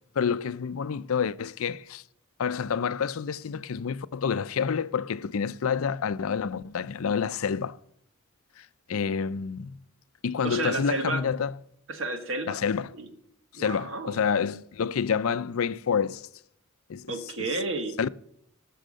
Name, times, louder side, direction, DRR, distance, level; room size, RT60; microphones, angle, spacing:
voice 1, 0.2-2.0 2.4-7.8 8.6-9.8 10.2-11.5 12.5-12.9 13.5-16.3 16.9-17.5 18.0-18.1, left 6 dB, 75° left, 0.5 m, -28 dB
voice 2, 10.4-11.2 11.9-12.6 12.9-13.1 13.5-14.2 17.1-18.0, right 2 dB, 65° right, 1.8 m, -31 dB
19.0 x 6.5 x 6.4 m
head